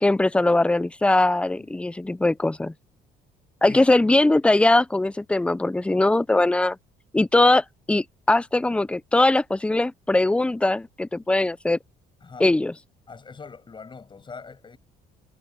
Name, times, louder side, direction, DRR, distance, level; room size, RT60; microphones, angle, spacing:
voice 1, 0.0-2.7 3.6-6.8 7.1-11.8 12.4-12.7, left 2 dB, 5° left, 0.5 m, -21 dB
voice 2, 12.2-12.5 13.1-14.8, left 5 dB, 30° left, 7.9 m, -42 dB
cardioid pair, 110°, 17 cm